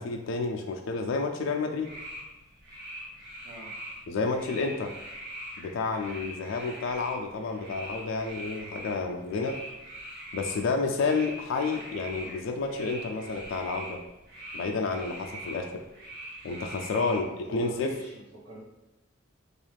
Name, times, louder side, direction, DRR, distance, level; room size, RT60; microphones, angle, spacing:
voice 1, 0.0-1.9 4.1-4.9 5.6-9.6 10.3-14.0 14.5-15.8 16.4-17.9, left 4 dB, 80° left, 3 dB, 0.3 m, -30 dB
sound 1, 1.8-17.2, right 1 dB, 55° right, 1.2 m, -43 dB
voice 2, 16.9-18.6, equal, 75° right, -7 dB, 0.6 m, -44 dB
2.4 x 2.3 x 3.2 m, 0.96 s
head